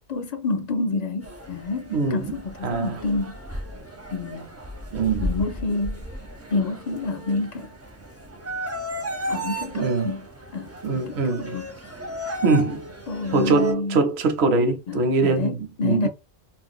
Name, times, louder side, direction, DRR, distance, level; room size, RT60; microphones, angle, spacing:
voice 1, 0.1-3.4 4.1-4.5 5.2-6.1 6.5-7.7 9.3-10.3 10.5-11.7 13.1-14.0 14.9-16.1, left 3 dB, 50° left, 0.5 m, -28 dB
sound 1, 1.2-13.7, equal, 20° right, 0.5 m, -35 dB
voice 2, 1.9-2.3 2.6-3.0 4.9-5.2 9.7-10.1 10.8-11.6 12.4-12.9 13.3-16.1, right 3 dB, 75° right, 0.9 m, -22 dB
2.5 x 2.1 x 3.5 m
omnidirectional pair, 1.1 m